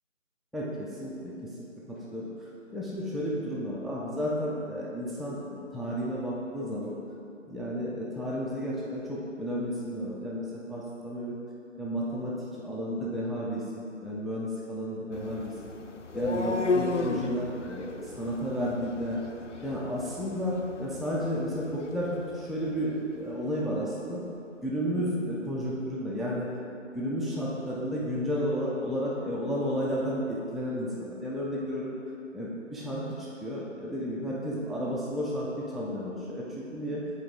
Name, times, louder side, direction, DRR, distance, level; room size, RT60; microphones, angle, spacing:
voice 1, 0.5-1.3 1.9-2.3 2.7-6.9 7.5-11.4 11.8-15.5 16.1-19.2 19.6-24.2 24.6-26.5 26.9-31.9 32.3-37.0, equal, ahead, -6 dB, 0.4 m, -32 dB
sound 1, 15.1-23.1, left 3 dB, 65° left, 0.5 m, -35 dB
7.4 x 4.3 x 3.8 m, 2.5 s
figure-of-eight pair, 170°, 39 cm